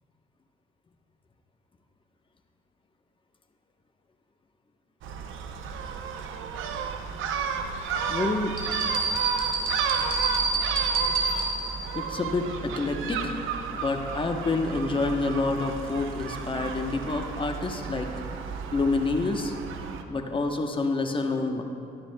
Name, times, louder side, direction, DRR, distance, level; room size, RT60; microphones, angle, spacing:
Gull seagull, 5.0-20.0, right 6 dB, 85° right, 0.6 m, -33 dB
voice 1, 8.1-8.5 11.9-13.4 13.7-18.1 18.7-19.5 20.1-21.6, left 3 dB, 25° left, 4 dB, 0.9 m, -28 dB
sound 1, 8.6-11.9, right 3 dB, 45° right, 1.8 m, -27 dB
13.5 x 11.5 x 2.2 m, 2.5 s
cardioid pair, 90°, 20 cm